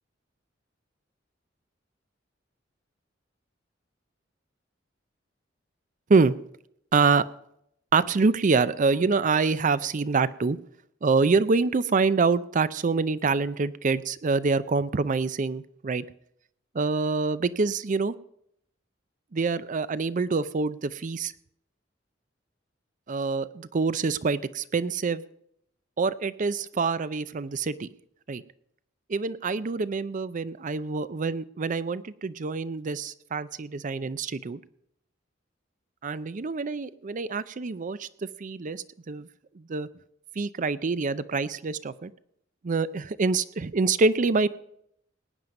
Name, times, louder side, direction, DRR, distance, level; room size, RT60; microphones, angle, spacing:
voice 1, 6.9-7.2 7.9-10.6 11.0-16.0 16.7-18.1 19.3-21.3 23.1-25.2 26.0-27.9 28.3-28.4 29.1-34.6 36.0-38.1 38.4-39.3 39.7-39.9 40.4-42.1 42.6-44.5, right 4 dB, 45° right, 16 dB, 0.5 m, -26 dB
19.0 x 9.3 x 5.2 m, 0.72 s
head